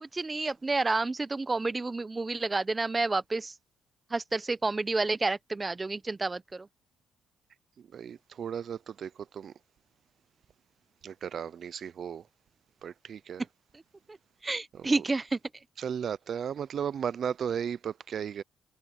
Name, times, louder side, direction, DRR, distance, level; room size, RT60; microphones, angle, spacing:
voice 1, 0.0-3.5 4.1-6.7 14.1-14.2 14.4-15.4, right 3 dB, 25° right, 0.9 m, -30 dB
voice 2, 7.9-9.5 11.0-12.2 12.8-13.4 14.8-15.0 15.8-18.4, right 8 dB, 55° right, 0.5 m, -35 dB
cardioid pair, 90°, 0 cm